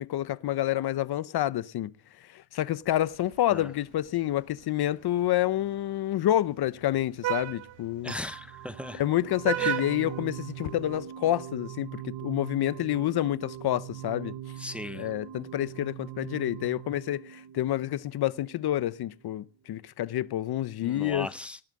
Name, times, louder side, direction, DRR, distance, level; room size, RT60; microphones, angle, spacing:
voice 1, 0.0-1.9 2.3-8.1 9.0-14.4 14.9-21.3, left 13 dB, 50° left, 0.8 m, -28 dB
Vehicle horn car horn honking, 2.9-11.1, right 13 dB, 65° right, 1.5 m, -38 dB
voice 2, 8.0-9.0 9.6-9.8 14.6-15.1 20.8-21.6, left 1 dB, ahead, 0.7 m, -37 dB
sound 1, 8.1-19.0, right 11 dB, 45° right, 1.2 m, -42 dB
18.5 x 8.9 x 7.5 m
cardioid pair, 120°, 49 cm